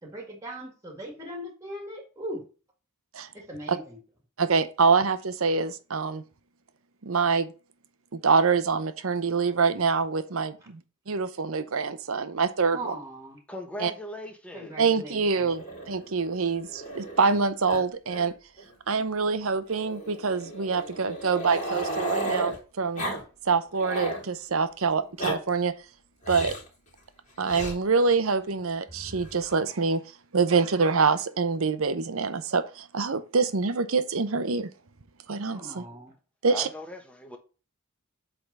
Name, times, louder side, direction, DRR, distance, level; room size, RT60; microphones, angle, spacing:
voice 1, 0.0-2.4 3.3-4.0 10.6-10.7 12.7-13.4 14.5-15.5 19.0-19.1 35.5-36.1, right 1 dB, 15° right, 1.9 m, -39 dB
voice 2, 4.4-6.2 7.0-7.5 8.1-10.8 11.1-12.9 13.8-13.9 14.8-18.3 18.9-23.0 23.5-25.7 26.3-26.5 27.4-30.0 30.3-34.7 35.3-35.8 36.4-36.7, right 4 dB, 65° right, 0.8 m, -25 dB
voice 3, 13.5-14.8 36.5-37.4, left 1 dB, 5° left, 1.2 m, -39 dB
Growling, 15.5-17.4 17.7-17.8 18.1-18.3 18.6-18.7 19.7-22.6 23.0-23.2 23.5-24.2 25.0-25.4 26.2-26.7 27.5-27.8 28.9-29.5, right 1 dB, 35° left, 2.9 m, -34 dB
8.0 x 3.7 x 5.4 m
head